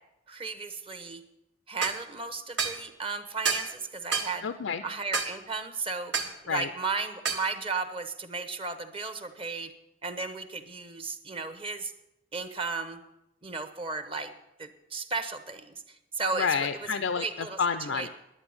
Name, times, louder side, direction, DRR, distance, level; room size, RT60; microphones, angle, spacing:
voice 1, 0.3-1.2 1.7-4.5 4.8-6.1 6.4-9.7 10.0-11.9 12.3-13.0 13.4-14.3 14.6-16.7 17.1-18.1, right 4 dB, 30° right, 9 dB, 0.9 m, -34 dB
sound 1, 1.8-2.0 2.6-2.8 3.4-3.7 4.1-4.3 5.1-5.3 6.1-6.3 7.2-7.5, right 5 dB, 65° right, 1.4 m, -29 dB
voice 2, 4.4-4.8 6.5-6.7 16.4-18.1, left 6 dB, 90° left, 10 dB, 0.6 m, -29 dB
11.0 x 8.9 x 8.6 m, 0.88 s
head